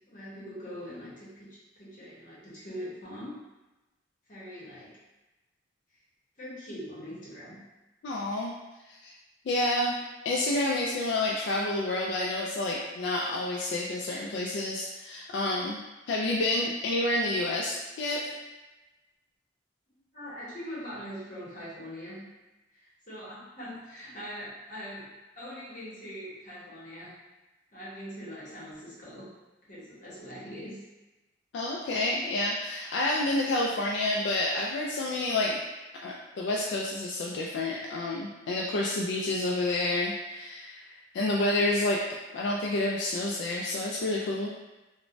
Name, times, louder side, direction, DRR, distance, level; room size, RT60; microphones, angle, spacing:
voice 1, 0.1-3.4 4.3-4.9 6.4-7.6 20.1-22.2 22.7-27.1 27.7-29.3 29.7-30.8, equal, 45° left, -7 dB, 0.9 m, -42 dB
voice 2, 8.0-8.5 9.0-9.1 9.5-9.9 10.2-15.8 16.1-18.2 31.5-35.6 36.0-42.0 42.3-44.5, left 2 dB, 75° left, -3 dB, 0.3 m, -29 dB
3.1 x 2.1 x 2.5 m, 1.1 s
head